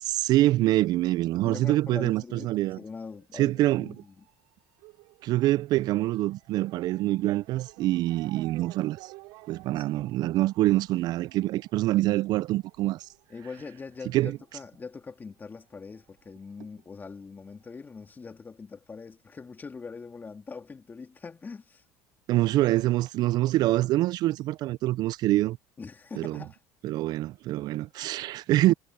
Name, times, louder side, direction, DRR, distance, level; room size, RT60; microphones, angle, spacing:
voice 1, 0.0-2.8 3.3-3.9 5.2-9.1 9.5-13.1 14.1-14.3 22.3-25.6 26.2-26.4 26.8-28.7, right 16 dB, 55° right, 0.4 m, -25 dB
voice 2, 1.4-4.3 9.8-10.0 13.3-21.8 25.8-26.6, left 4 dB, 25° left, 2.9 m, -42 dB
Motor vehicle (road) / Siren, 2.7-15.7 16.0-17.1 17.8-17.9 18.1-18.2, right 23 dB, 75° right, 4.2 m, -54 dB
supercardioid pair, 105°, 8 cm